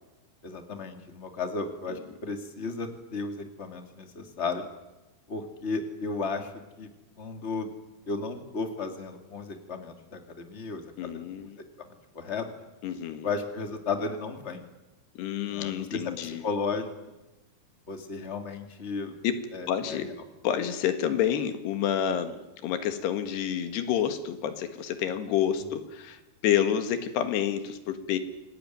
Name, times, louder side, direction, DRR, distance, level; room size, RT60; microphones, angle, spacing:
voice 1, 0.4-4.6 5.3-6.5 6.8-6.9 7.2-7.7 8.1-11.2 11.8-11.9 12.1-12.5 13.2-14.6 15.4-16.1 16.4-16.9 17.9-19.1 19.5-20.0, left 4 dB, 20° left, 5 dB, 2.1 m, -34 dB
voice 2, 11.0-11.6 12.8-13.3 15.2-16.4 19.2-19.4 19.7-20.1 20.4-28.2, left 9 dB, 85° left, 8 dB, 3.8 m, -29 dB
27.5 x 19.0 x 9.5 m, 1.0 s
omnidirectional pair, 4.6 m